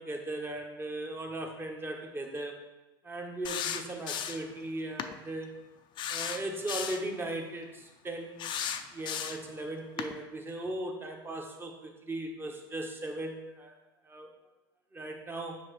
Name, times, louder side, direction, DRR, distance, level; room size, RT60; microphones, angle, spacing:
voice 1, 0.0-2.6 3.0-5.5 6.1-8.6 8.9-13.7 14.0-14.3 14.9-15.6, right 1 dB, 15° right, 3 dB, 1.2 m, -38 dB
sound 1, 3.4-4.5 5.0-5.1 6.0-7.1 8.4-9.5 10.0-10.1, left 8 dB, 40° left, 0.5 m, -35 dB
7.3 x 5.7 x 3.2 m, 1.0 s
hypercardioid pair, 100°, 12 cm